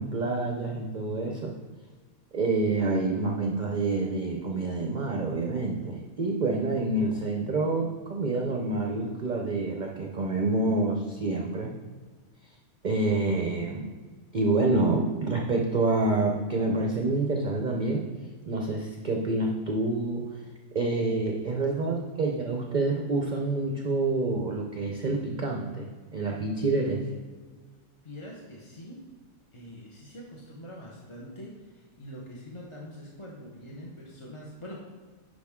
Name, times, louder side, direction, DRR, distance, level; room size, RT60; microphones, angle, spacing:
voice 1, 0.0-1.5 2.3-11.7 12.8-13.9 14.3-18.1 18.5-20.2 20.7-27.0, right 2 dB, 45° right, 1 dB, 0.7 m, -27 dB
voice 2, 28.0-29.0 29.5-34.8, equal, 25° left, -4 dB, 0.9 m, -44 dB
10.5 x 4.8 x 3.6 m, 1.5 s
omnidirectional pair, 1.5 m